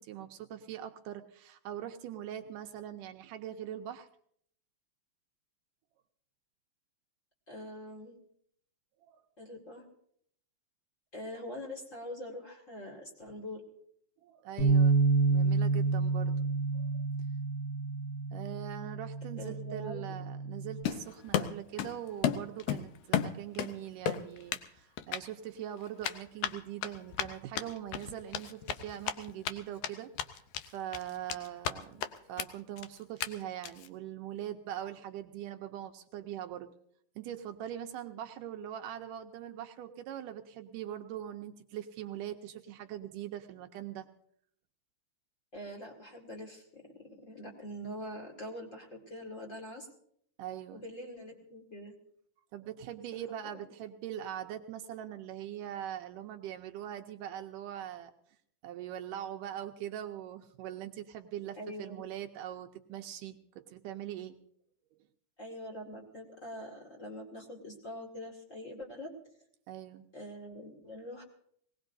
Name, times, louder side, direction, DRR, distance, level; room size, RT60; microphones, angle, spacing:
voice 1, 0.0-4.1 9.1-9.2 14.2-15.0 15.3-16.4 16.7-17.1 18.3-30.1 30.7-32.0 32.3-36.7 37.2-44.1 50.4-50.8 52.5-58.1 58.6-64.4 69.7-70.1, right 11 dB, 75° right, 5 dB, 2.1 m, -42 dB
voice 2, 7.5-8.2 9.4-9.8 11.1-13.6 19.4-20.0 31.8-32.0 45.5-49.9 50.7-51.9 53.5-53.6 61.5-62.1 65.4-69.1 70.1-71.2, left 1 dB, 30° left, 0 dB, 1.6 m, -44 dB
Bass guitar, 14.6-20.8, right 4 dB, 50° left, 2.0 m, -29 dB
Run, 20.8-22.0 22.2-23.7 24.1-24.7 25.0-25.2 26.0-29.5 29.8-29.9 30.2-30.7 30.9-31.7 32.0-32.1 32.4-32.5 32.8-32.9 33.2-33.3 33.6-33.9, left 10 dB, 75° left, 1.8 m, -33 dB
21.5 x 18.0 x 2.6 m, 0.68 s
omnidirectional pair, 4.1 m